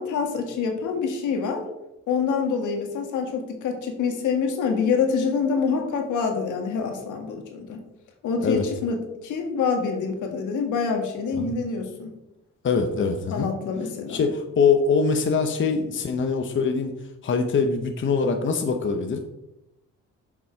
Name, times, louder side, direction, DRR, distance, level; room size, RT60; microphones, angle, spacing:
voice 1, 0.0-1.6 2.1-7.8 8.2-12.1 13.3-14.2, left 5 dB, 80° left, 4 dB, 1.7 m, -26 dB
voice 2, 12.6-13.5 14.1-16.9 17.2-19.2, left 5 dB, 40° left, 5 dB, 0.9 m, -23 dB
7.0 x 6.1 x 4.5 m, 0.92 s
cardioid pair, 90°, 30 cm